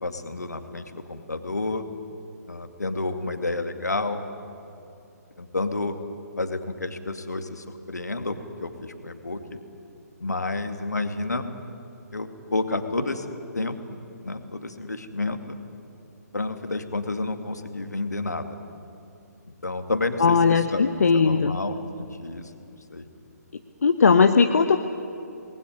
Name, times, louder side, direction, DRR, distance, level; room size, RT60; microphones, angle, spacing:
voice 1, 0.0-1.8 2.5-4.2 5.4-6.0 6.4-9.6 10.2-11.4 12.1-13.3 13.5-14.0 14.2-15.6 16.3-18.6 19.6-20.8 21.1-22.5 22.9-23.1, left 2 dB, 75° left, 7 dB, 2.3 m, -30 dB
voice 2, 20.2-21.6 23.8-24.8, left 5 dB, 60° left, 7 dB, 1.1 m, -18 dB
28.0 x 20.5 x 9.7 m, 2.7 s
figure-of-eight pair, 135°, 9 cm